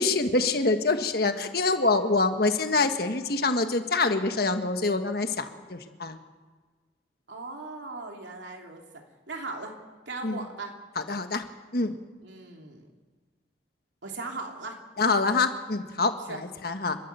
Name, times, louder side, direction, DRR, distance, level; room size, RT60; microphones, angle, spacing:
voice 1, 0.0-6.2 10.2-10.5 10.9-11.4 11.7-12.0 15.0-17.0, left 3 dB, 55° left, 7 dB, 1.5 m, -26 dB
voice 2, 7.3-9.7 10.1-10.7 12.2-12.9 14.0-14.8 16.3-16.4, right 3 dB, 80° right, 2 dB, 3.1 m, -38 dB
30.0 x 13.5 x 6.9 m, 1.4 s
head